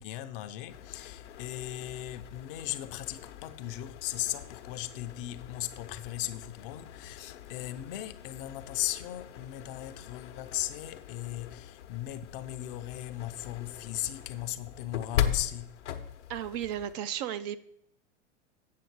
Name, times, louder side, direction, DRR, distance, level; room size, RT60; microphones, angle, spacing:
voice 1, 0.0-15.9, left 14 dB, 50° left, 0.8 m, -37 dB
sound 1, 0.7-16.9, left 10 dB, 75° left, 1.0 m, -40 dB
voice 2, 16.3-17.6, right 10 dB, 40° right, 0.4 m, -34 dB
8.5 x 6.3 x 4.6 m
hypercardioid pair, 110°, 35 cm